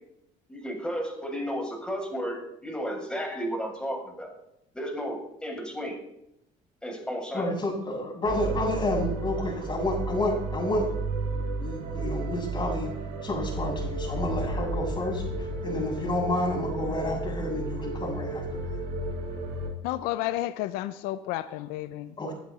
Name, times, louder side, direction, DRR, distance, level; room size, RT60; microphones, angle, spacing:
voice 1, 0.5-4.3 4.7-6.0 6.8-7.5, equal, 5° left, -1 dB, 7.7 m, -33 dB
voice 2, 7.3-10.9 11.6-12.9 13.2-18.8 22.2-22.3, left 1 dB, 30° left, 0 dB, 7.5 m, -30 dB
sound 1, 8.2-19.7, right 2 dB, 70° right, 5.3 m, -32 dB
voice 3, 19.8-22.2, left 15 dB, 80° left, 13 dB, 0.7 m, -31 dB
21.0 x 12.0 x 4.3 m, 0.81 s
supercardioid pair, 100°, 16 cm